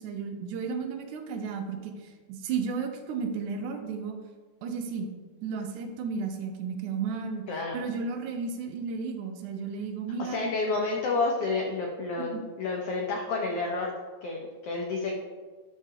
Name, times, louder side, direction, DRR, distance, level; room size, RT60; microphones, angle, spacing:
voice 1, 0.0-4.2 4.6-5.1 5.4-7.4 7.7-10.5 12.2-12.4, right 5 dB, 80° right, 5 dB, 2.1 m, -33 dB
voice 2, 10.2-13.9 14.2-15.1, left 3 dB, 90° left, 0 dB, 1.3 m, -30 dB
12.0 x 4.8 x 2.8 m, 1.4 s
omnidirectional pair, 3.7 m